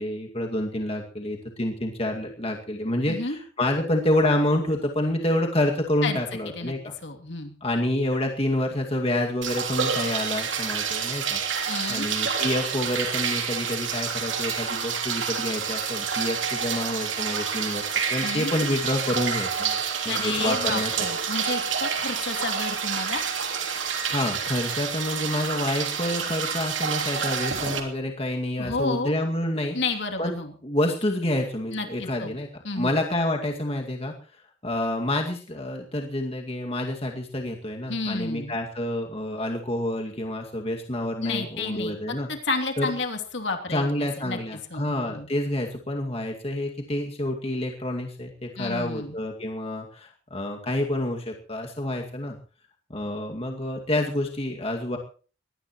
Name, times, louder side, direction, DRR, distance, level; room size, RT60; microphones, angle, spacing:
voice 1, 0.0-6.9 7.6-11.4 11.9-17.8 18.1-21.1 24.1-29.8 30.2-30.3 30.6-34.1 34.6-42.3 42.8-42.9 43.7-52.4 52.9-55.0, left 1 dB, 30° left, 1 dB, 2.2 m, -28 dB
voice 2, 3.1-3.4 6.0-6.2 6.5-6.7 7.0-7.5 11.7-12.1 18.2-18.5 20.1-23.2 28.6-29.1 29.7-30.5 31.7-32.4 32.6-32.9 37.9-38.5 41.2-42.0 42.3-45.3 48.6-49.2, left 3 dB, 65° left, 3 dB, 2.9 m, -31 dB
sound 1, 9.4-27.8, right 6 dB, 70° right, 3.1 m, -28 dB
22.5 x 17.5 x 3.1 m, 0.39 s
head